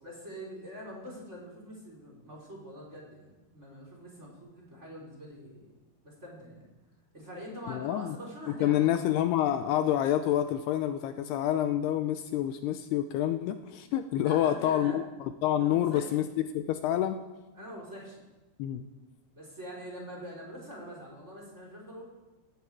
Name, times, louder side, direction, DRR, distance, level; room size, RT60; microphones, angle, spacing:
voice 1, 0.0-5.7 6.0-6.7 7.1-9.0 14.2-15.0 15.6-16.3 17.5-18.3 19.3-22.0, equal, 15° right, -2 dB, 3.8 m, -44 dB
voice 2, 7.7-8.2 8.6-15.0 15.4-17.2 18.6-18.9, left 11 dB, 80° left, 9 dB, 2.6 m, -28 dB
16.5 x 16.0 x 4.7 m, 1.1 s
omnidirectional pair, 4.9 m